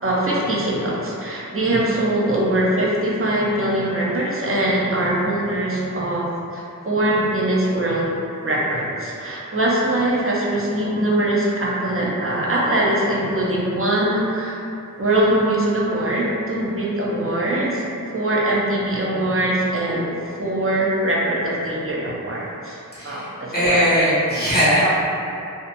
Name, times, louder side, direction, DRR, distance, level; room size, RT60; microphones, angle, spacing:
voice 1, 0.0-8.1 8.4-14.6 15.0-20.1 20.4-22.8 23.0-23.8, right 1 dB, 40° right, -5 dB, 0.6 m, -22 dB
voice 2, 22.9-24.9, equal, 30° left, -11 dB, 0.7 m, -19 dB
2.7 x 2.3 x 2.5 m, 2.7 s
wide cardioid pair, 65°, 34 cm